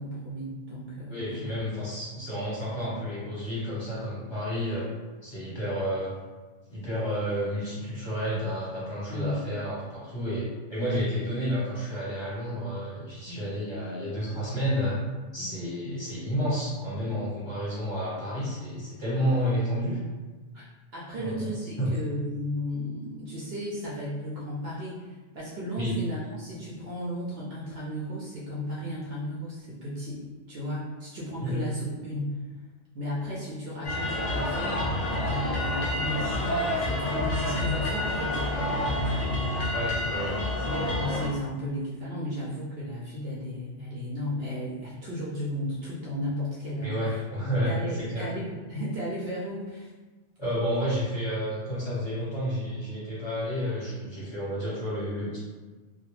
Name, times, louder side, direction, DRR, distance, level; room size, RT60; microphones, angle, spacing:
voice 1, 0.0-1.5 9.1-9.4 13.3-13.4 15.4-15.5 20.5-20.6 20.9-32.4 32.9-39.6 40.6-47.2 47.7-49.9, equal, 65° right, -6 dB, 0.6 m, -34 dB
voice 2, 1.1-4.9 5.2-6.1 6.7-15.0 15.3-20.0 21.2-21.5 21.8-21.9 25.8-25.9 31.4-31.5 39.7-40.5 46.8-48.3 50.4-55.4, equal, 30° left, -9 dB, 0.6 m, -30 dB
sound 1, 33.8-41.3, left 1 dB, 80° left, 0.3 m, -28 dB
2.2 x 2.0 x 3.0 m, 1.3 s
omnidirectional pair, 1.4 m